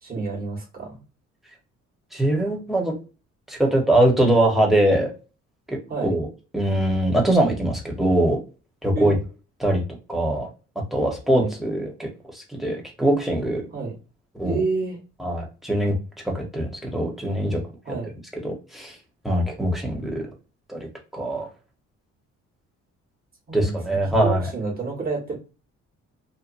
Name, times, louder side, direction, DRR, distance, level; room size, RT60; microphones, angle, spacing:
voice 1, 0.0-1.0 5.9-6.2 8.9-9.2 11.3-11.5 13.7-13.9 14.4-15.0 17.8-18.1 23.5-25.4, right 4 dB, 30° right, -3 dB, 1.4 m, -29 dB
voice 2, 2.1-2.9 3.5-5.1 5.7-6.3 6.5-8.4 8.8-9.2 9.6-9.8 10.1-10.5 10.9-13.6 14.3-14.6 15.2-15.9 16.2-17.6 18.4-19.0 19.2-20.2 20.7-20.9 21.1-21.5 23.5-24.5, right 1 dB, ahead, -1 dB, 1.1 m, -22 dB
2.8 x 2.2 x 2.6 m, 0.34 s
cardioid pair, 90°, 30 cm